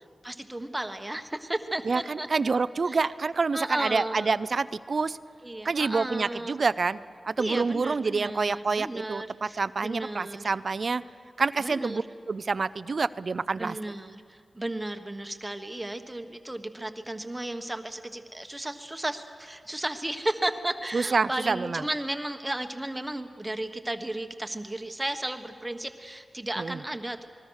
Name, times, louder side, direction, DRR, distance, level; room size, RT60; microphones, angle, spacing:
voice 1, 0.2-2.3 2.9-3.0 3.5-4.3 5.4-6.5 7.4-10.5 11.6-12.1 13.6-27.3, right 1 dB, 15° right, 7 dB, 1.4 m, -34 dB
voice 2, 1.9-5.2 5.6-7.0 7.2-11.0 11.4-12.0 12.3-13.8 20.9-21.8 26.6-26.8, right 4 dB, 60° right, 16 dB, 0.5 m, -27 dB
26.5 x 20.5 x 6.5 m, 2.2 s
wide cardioid pair, 70°, 0 cm